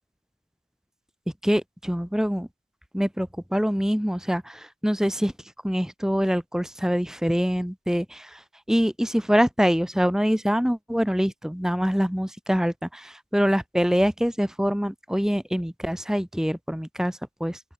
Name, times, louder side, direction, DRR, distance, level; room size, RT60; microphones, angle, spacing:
voice 1, 1.4-2.5 2.9-5.3 5.6-17.6, equal, 5° right, 0.8 m, -25 dB
open air
head